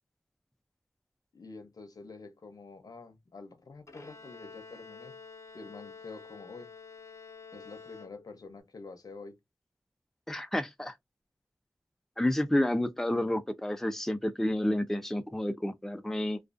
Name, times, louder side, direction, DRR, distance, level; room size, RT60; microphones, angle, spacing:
voice 1, 1.3-5.2 5.5-6.7 7.5-9.4, left 3 dB, 85° left, 0.6 m, -47 dB
Bowed string instrument, 3.9-8.6, left 4 dB, 50° left, 0.7 m, -49 dB
voice 2, 10.3-10.9 12.2-16.4, left 1 dB, 5° left, 0.4 m, -30 dB
2.4 x 2.3 x 2.4 m
wide cardioid pair, 75°, 6 cm